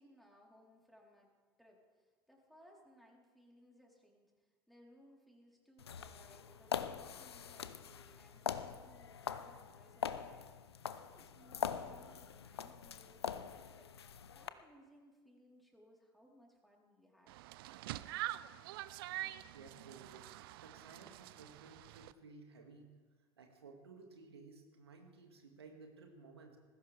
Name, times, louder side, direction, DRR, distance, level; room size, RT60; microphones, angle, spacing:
voice 1, 0.0-1.3 1.6-13.9 14.3-17.4, equal, ahead, -2 dB, 3.8 m, -64 dB
sound 1, 5.8-14.5, left 8 dB, 80° left, 0.6 m, -43 dB
sound 2, 17.3-22.1, right 15 dB, 65° right, 0.5 m, -45 dB
voice 2, 19.5-22.9 23.4-26.6, right 4 dB, 80° right, 3 dB, 2.1 m, -57 dB
19.5 x 16.0 x 3.4 m, 1.4 s
figure-of-eight pair, 70°, 13 cm